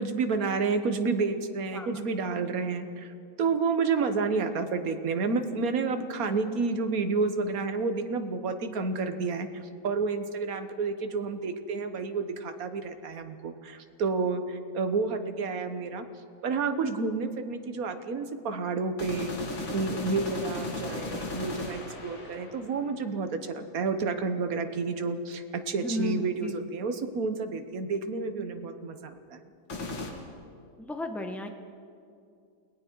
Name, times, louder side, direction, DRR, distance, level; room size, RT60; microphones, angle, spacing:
voice 1, 0.0-16.0 16.4-19.3 19.7-29.4, right 4 dB, 45° right, 8 dB, 1.4 m, -30 dB
sound 1, 19.0-23.0 29.7-30.1, left 2 dB, 60° left, 2.9 m, -36 dB
voice 2, 25.8-26.5 30.8-31.5, equal, ahead, 5 dB, 0.9 m, -34 dB
29.0 x 20.0 x 4.6 m, 2.4 s
omnidirectional pair, 2.4 m